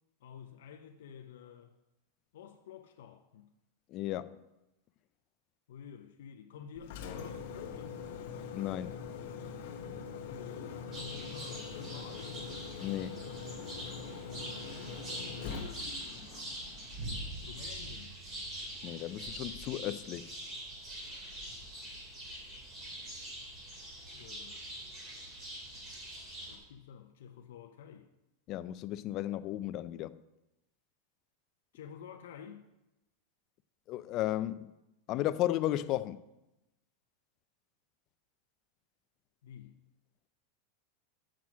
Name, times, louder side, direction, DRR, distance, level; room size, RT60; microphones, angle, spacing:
voice 1, 0.2-1.8 2.3-3.5 5.7-8.0 10.2-12.5 15.1-16.5 17.4-18.2 24.1-24.8 26.4-28.1 31.7-32.7 39.4-39.8, left 8 dB, 80° left, 0.6 m, -51 dB
voice 2, 3.9-4.4 8.5-9.0 12.8-13.2 18.8-20.3 28.5-30.2 33.9-34.7 35.1-36.2, left 14 dB, 35° left, 0.3 m, -34 dB
Engine, 6.7-17.7, left 5 dB, 55° left, 0.9 m, -43 dB
sound 1, 10.9-26.6, right 1 dB, 25° right, 2.8 m, -44 dB
7.5 x 6.1 x 6.1 m
supercardioid pair, 165°, 0 cm